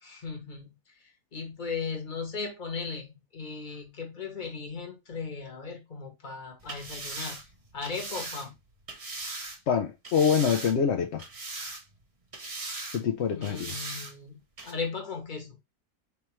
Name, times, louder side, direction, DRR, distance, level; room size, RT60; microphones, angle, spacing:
voice 1, 0.0-7.4 7.7-8.6 13.3-15.6, left 4 dB, 30° left, 1.2 m, -37 dB
sound 1, 6.6-9.6 10.0-10.9 11.2-12.0 12.3-13.0 13.4-14.1 14.6-14.7, right 2 dB, 25° right, 0.8 m, -39 dB
voice 2, 9.7-11.2 12.9-13.8, left 7 dB, 65° left, 0.7 m, -25 dB
4.4 x 3.5 x 3.0 m
omnidirectional pair, 1.8 m